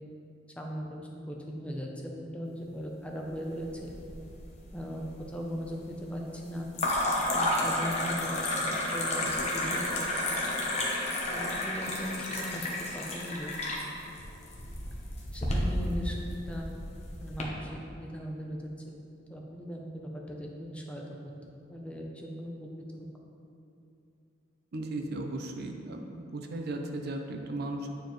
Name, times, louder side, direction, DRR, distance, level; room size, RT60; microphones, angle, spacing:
voice 1, 0.6-3.9 4.7-6.7 7.3-8.6 8.9-10.4 11.3-13.5 15.3-16.7 17.2-18.6 19.3-21.0 21.7-23.1, equal, 5° left, -1 dB, 0.6 m, -38 dB
sound 1, 3.6-4.4 4.7-5.3 6.7-17.4, left 1 dB, 35° left, 0.9 m, -31 dB
voice 2, 24.7-27.9, right 2 dB, 55° right, 4 dB, 0.5 m, -36 dB
9.0 x 4.6 x 3.1 m, 2.7 s
head